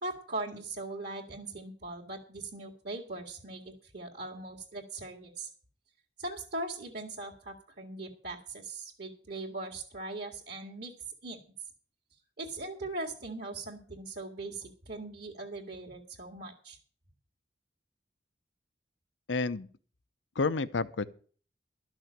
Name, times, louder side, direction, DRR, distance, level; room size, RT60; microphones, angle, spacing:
voice 1, 0.0-5.5 6.2-10.9 11.2-11.4 12.4-16.8, right 2 dB, 60° right, 2.1 m, -40 dB
voice 2, 19.3-19.7 20.4-21.1, left 3 dB, 85° left, 0.7 m, -29 dB
12.5 x 6.3 x 8.7 m
head